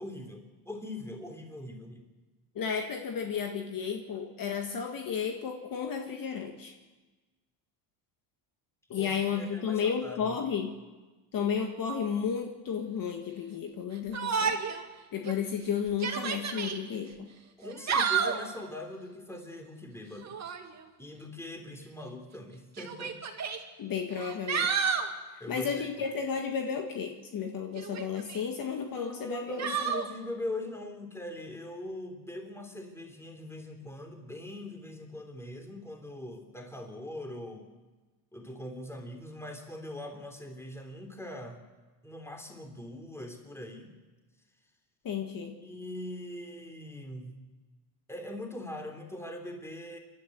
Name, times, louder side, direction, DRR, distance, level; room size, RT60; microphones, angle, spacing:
voice 1, 0.0-2.1 8.9-10.4 17.6-20.3 21.0-23.2 25.4-25.9 29.0-37.7 38.3-41.6 42.0-43.9 45.6-47.5 48.1-50.0, left 1 dB, 5° left, 3 dB, 3.5 m, -41 dB
voice 2, 2.6-6.7 8.9-10.7 11.3-14.6 15.1-17.3 23.8-24.9 25.3-29.7 45.0-45.6, left 7 dB, 45° left, 3 dB, 1.9 m, -33 dB
Yell, 14.1-14.8 15.2-15.3 15.9-16.8 17.6-18.5 20.2-20.7 21.8-21.9 22.8-23.6 24.1-25.1 27.7-28.4 29.6-30.1, right 6 dB, 35° right, 2.3 m, -30 dB
28.0 x 12.0 x 8.0 m, 1.3 s
cardioid pair, 115°, 48 cm